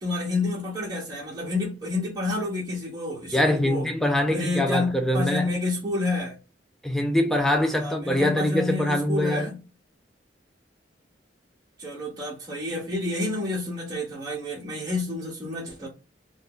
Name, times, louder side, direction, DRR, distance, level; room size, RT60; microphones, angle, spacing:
voice 1, 0.0-3.9 4.3-6.4 7.8-9.6 11.8-15.9, left 2 dB, 20° right, 0.8 m, -29 dB
voice 2, 3.3-5.5 6.8-9.5, left 1 dB, ahead, 0.3 m, -23 dB
2.6 x 2.3 x 3.5 m
head